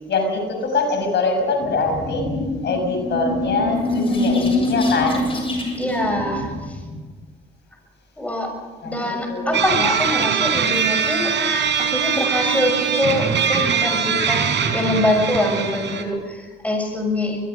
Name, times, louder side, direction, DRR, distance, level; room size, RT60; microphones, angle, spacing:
voice 1, 0.1-2.3 2.6-5.2 8.8-9.6, left 3 dB, 60° left, 4 dB, 6.2 m, -23 dB
sound 1, 1.6-7.0, left 2 dB, 25° left, 7.5 m, -24 dB
voice 2, 5.8-6.8 8.2-8.5 8.8-11.3 11.8-17.5, left 1 dB, 5° left, 2 dB, 6.6 m, -24 dB
sound 2, 9.5-16.0, right 7 dB, 65° right, 4.0 m, -22 dB
22.5 x 22.5 x 6.4 m, 1.3 s
cardioid pair, 90°, 20 cm